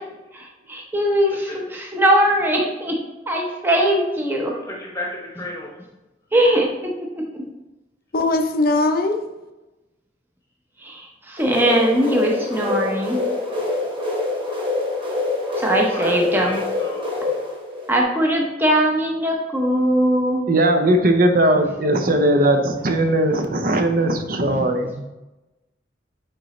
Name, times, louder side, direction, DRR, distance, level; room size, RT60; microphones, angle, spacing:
voice 1, 0.3-3.0 3.3-4.5 6.3-6.9 10.8-13.2 15.6-16.6 17.9-20.4 24.5-24.6, right 1 dB, 10° right, -1 dB, 0.7 m, -20 dB
voice 2, 4.6-5.7 15.9-17.1, left 1 dB, 15° left, -2 dB, 1.0 m, -33 dB
voice 3, 8.1-9.3, left 2 dB, 50° left, 6 dB, 0.6 m, -20 dB
sound 1, 11.4-18.0, left 2 dB, 25° right, 1.1 m, -25 dB
voice 4, 20.5-25.0, right 1 dB, 50° right, 6 dB, 0.7 m, -19 dB
8.8 x 3.9 x 3.2 m, 1.0 s
head